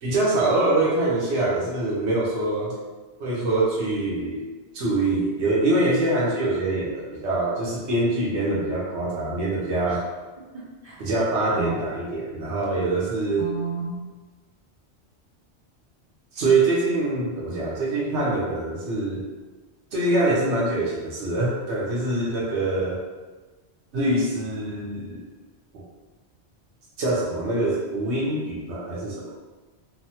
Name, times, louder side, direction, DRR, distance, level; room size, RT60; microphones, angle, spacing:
voice 1, 0.0-2.7 3.2-4.4 4.7-10.0 11.0-13.5 16.3-19.2 19.9-23.0 23.9-25.2 25.7-25.8 27.0-29.3, right 2 dB, 80° right, -5 dB, 1.1 m, -24 dB
voice 2, 10.5-11.0 11.5-11.8 13.4-14.0, right 5 dB, 50° right, -9 dB, 0.8 m, -33 dB
3.2 x 2.0 x 2.7 m, 1.3 s
omnidirectional pair, 1.1 m